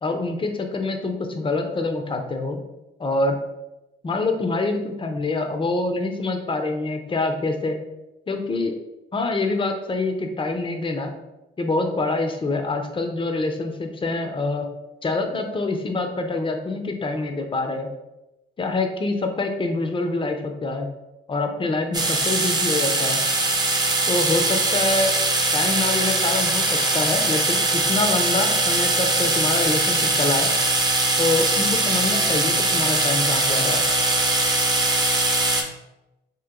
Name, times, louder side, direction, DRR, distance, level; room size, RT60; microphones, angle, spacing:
voice 1, 0.0-2.6 3.0-3.3 4.0-7.8 8.3-8.7 9.1-11.1 11.6-14.7 15.0-17.9 18.6-20.9 21.3-23.2 24.1-25.1 25.5-27.6 27.9-30.5 31.2-33.8, left 3 dB, 25° left, 5 dB, 0.5 m, -25 dB
sound 1, 21.9-35.6, right 2 dB, 20° right, 0.6 m, -21 dB
2.9 x 2.9 x 3.7 m, 0.98 s
cardioid pair, 90°, 20 cm